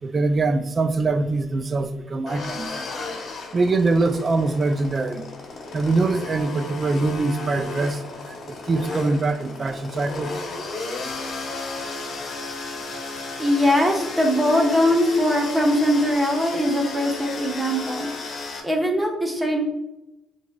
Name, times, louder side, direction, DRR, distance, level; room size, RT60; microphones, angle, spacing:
voice 1, 0.0-2.7 3.5-5.2 5.7-10.4, right 3 dB, 35° right, 0.3 m, -23 dB
sound 1, 2.3-18.6, left 3 dB, 55° left, 0.8 m, -34 dB
voice 2, 13.4-18.1 18.6-19.6, equal, 10° right, 0.9 m, -21 dB
5.7 x 2.8 x 2.2 m
cardioid pair, 95°, 0 cm